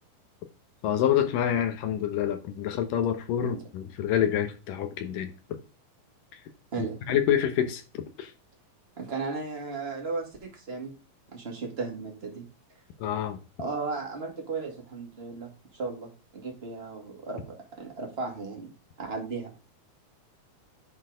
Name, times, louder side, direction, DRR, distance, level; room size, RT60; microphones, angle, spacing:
voice 1, 0.8-5.6 6.8-8.3 13.0-13.4, left 10 dB, 75° left, 2.6 m, -27 dB
voice 2, 6.7-7.2 9.0-10.9 11.3-12.5 13.6-18.7 19.0-19.5, right 4 dB, 20° right, 1.9 m, -35 dB
10.5 x 4.5 x 5.0 m
omnidirectional pair, 4.0 m